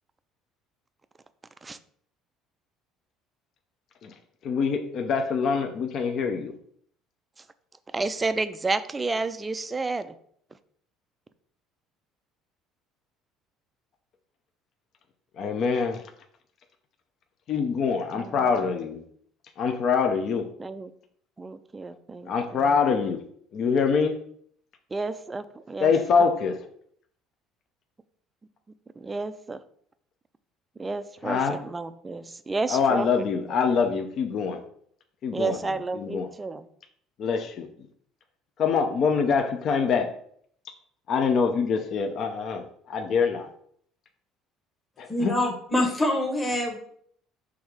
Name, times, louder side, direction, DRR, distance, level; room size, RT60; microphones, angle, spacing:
voice 1, 4.4-6.5 15.4-16.0 17.5-19.0 19.6-20.5 22.3-23.2 23.5-24.2 25.8-26.6 31.2-31.6 32.7-34.6 35.2-35.6 35.9-36.3 37.2-37.7 38.6-40.1 41.1-43.5 45.0-45.4, left 5 dB, 45° left, 5 dB, 0.6 m, -24 dB
voice 2, 7.9-10.1 18.1-18.7 20.6-20.9 21.4-22.7 24.9-25.9 29.0-29.6 30.8-33.1 33.3-33.4 33.7-33.8 35.3-36.7, right 3 dB, 15° right, 11 dB, 0.4 m, -31 dB
voice 3, 45.1-46.8, left 1 dB, 10° left, 0 dB, 1.2 m, -25 dB
6.3 x 3.5 x 4.9 m, 0.63 s
cardioid pair, 150°, 0 cm